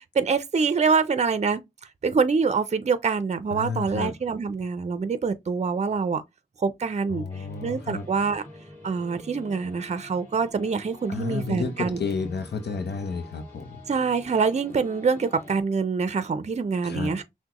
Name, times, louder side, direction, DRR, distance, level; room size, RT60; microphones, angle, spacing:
voice 1, 0.0-1.6 2.0-6.2 6.6-8.4 8.8-12.0 13.9-17.2, right 5 dB, 40° right, 0.5 m, -25 dB
voice 2, 3.5-4.1 7.1-8.1 11.1-13.8 16.8-17.1, left 5 dB, 80° left, 0.6 m, -31 dB
sound 1, 7.3-15.6, left 1 dB, 10° left, 2.2 m, -46 dB
5.9 x 2.1 x 2.9 m
wide cardioid pair, 75°, 17 cm